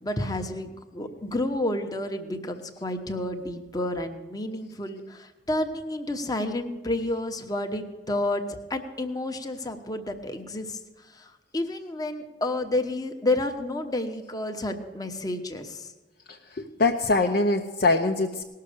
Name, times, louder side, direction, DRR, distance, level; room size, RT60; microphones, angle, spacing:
voice 1, 0.0-8.4 8.7-10.8 11.2-15.9, left 1 dB, 20° left, 6 dB, 1.0 m, -30 dB
voice 2, 16.3-18.4, left 3 dB, 55° left, 2 dB, 0.8 m, -23 dB
18.5 x 6.7 x 6.7 m, 1.2 s
head